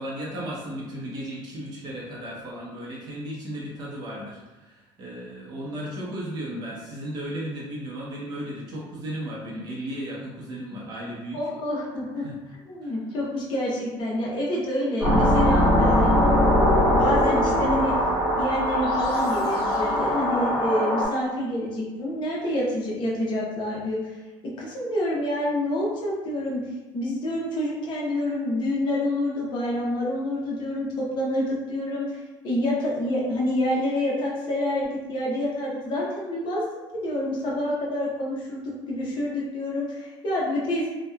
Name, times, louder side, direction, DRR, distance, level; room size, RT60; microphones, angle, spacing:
voice 1, 0.0-11.4 12.2-12.4 12.8-12.9, right 1 dB, 40° right, -5 dB, 0.7 m, -35 dB
voice 2, 11.3-12.2 12.6-16.2 16.6-18.0 18.4-24.1 24.6-26.6 26.9-36.6 37.0-40.9, left 1 dB, 50° left, -4 dB, 0.7 m, -27 dB
sound 1, 15.0-21.1, equal, 5° left, 1.2 m, -21 dB
2.7 x 2.2 x 2.2 m, 1.1 s
cardioid pair, 155°, 11 cm